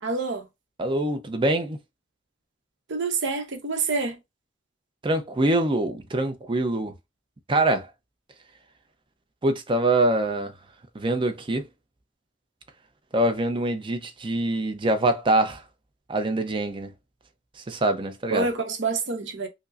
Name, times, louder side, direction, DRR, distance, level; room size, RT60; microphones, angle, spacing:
voice 1, 0.0-0.5 2.9-4.2 18.3-19.5, right 4 dB, 65° right, 0.9 m, -27 dB
voice 2, 0.8-1.8 5.0-6.9 7.5-7.9 9.4-10.5 10.9-11.6 13.1-15.6 16.1-16.9 17.6-18.5, right 1 dB, 25° right, 0.6 m, -24 dB
5.0 x 2.1 x 2.4 m
head